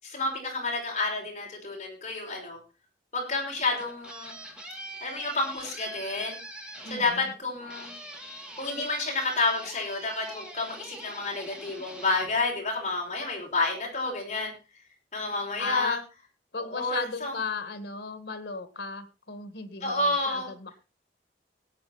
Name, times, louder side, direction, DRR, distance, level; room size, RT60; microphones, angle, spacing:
voice 1, 0.0-2.6 3.1-4.4 5.0-6.4 6.9-7.9 8.6-14.5 15.1-16.0 16.5-17.3 19.8-20.5, left 3 dB, 40° left, -1 dB, 5.9 m, -30 dB
sound 1, 3.5-13.2, right 1 dB, 5° right, 1.9 m, -44 dB
voice 2, 6.8-7.3 15.6-16.0 16.5-20.8, left 4 dB, 75° left, 11 dB, 1.8 m, -35 dB
18.0 x 8.7 x 4.2 m, 0.30 s
head